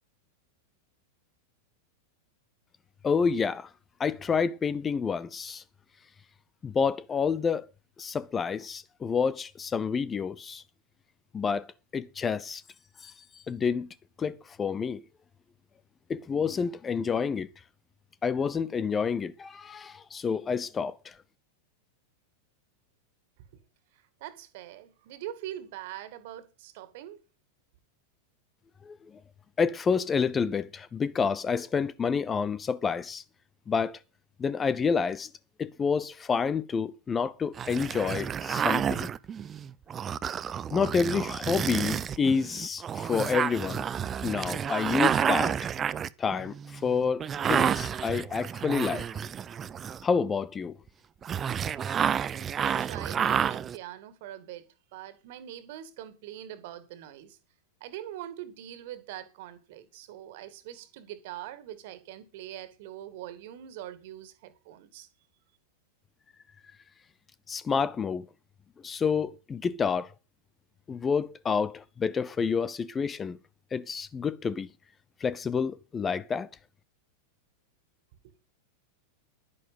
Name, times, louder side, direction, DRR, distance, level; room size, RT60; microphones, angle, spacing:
voice 1, 3.0-3.7 4.0-5.6 6.6-7.7 8.0-10.6 11.3-11.7 11.9-12.6 13.0-13.9 14.2-15.0 16.1-17.5 18.2-21.2 28.8-29.2 29.6-33.2 33.7-34.0 34.4-35.3 35.6-39.1 40.7-43.8 44.2-45.7 46.2-49.1 50.0-50.7 67.5-68.3 68.8-70.1 70.9-73.4 73.7-74.7 75.2-76.5, left 6 dB, 20° left, 0.7 m, -29 dB
voice 2, 23.9-27.2 51.8-51.9 52.6-54.6 54.9-57.4 57.8-65.1, right 12 dB, 50° right, 2.2 m, -43 dB
sound 1, 37.6-50.2 51.2-53.8, right 8 dB, 25° right, 0.7 m, -30 dB
11.5 x 11.0 x 5.3 m
figure-of-eight pair, 90°, 0 cm